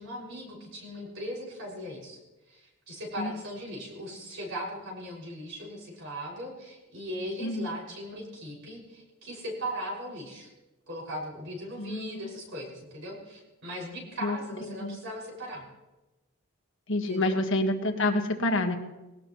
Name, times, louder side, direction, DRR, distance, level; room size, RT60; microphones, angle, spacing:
voice 1, 0.0-2.2 2.5-10.5 10.9-15.7 17.1-17.4, equal, 60° right, -1 dB, 6.1 m, -38 dB
voice 2, 11.8-12.2 14.2-14.4 14.8-15.0 16.9-18.8, left 2 dB, 60° left, 3 dB, 1.6 m, -27 dB
20.5 x 18.0 x 3.1 m, 1.1 s
head